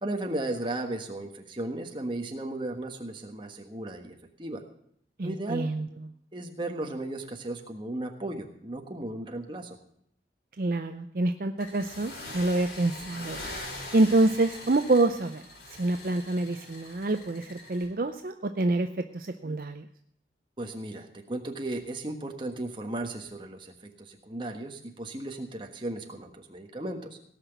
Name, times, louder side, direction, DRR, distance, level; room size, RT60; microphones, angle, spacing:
voice 1, 0.0-4.6 5.2-5.7 6.3-9.8 20.6-27.1, right 1 dB, 25° right, 4 dB, 1.4 m, -35 dB
voice 2, 5.2-6.1 10.6-13.4 13.9-15.4 15.8-19.9, right 2 dB, 50° right, 7 dB, 0.6 m, -27 dB
sound 1, 11.6-17.9, left 2 dB, 65° left, 3.4 m, -42 dB
17.5 x 5.9 x 8.1 m, 0.70 s
head